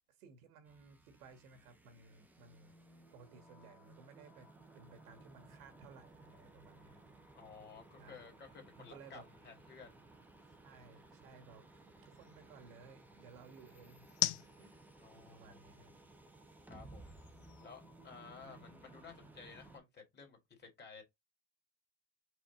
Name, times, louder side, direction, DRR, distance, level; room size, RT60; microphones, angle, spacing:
voice 1, 0.1-2.7 3.1-7.0 8.0-8.4 8.8-9.2 10.6-14.1 14.4-14.8 15.1-15.9 18.4-18.7, right 4 dB, 75° right, 1.6 m, -59 dB
sound 1, 0.7-19.8, right 2 dB, 5° right, 0.3 m, -59 dB
sound 2, 4.4-18.6, left 15 dB, 80° left, 0.6 m, -48 dB
voice 2, 7.3-10.1 15.0-15.9 16.7-17.2 17.6-21.0, left 5 dB, 25° left, 1.7 m, -55 dB
5.1 x 2.4 x 3.6 m
supercardioid pair, 110°, 43 cm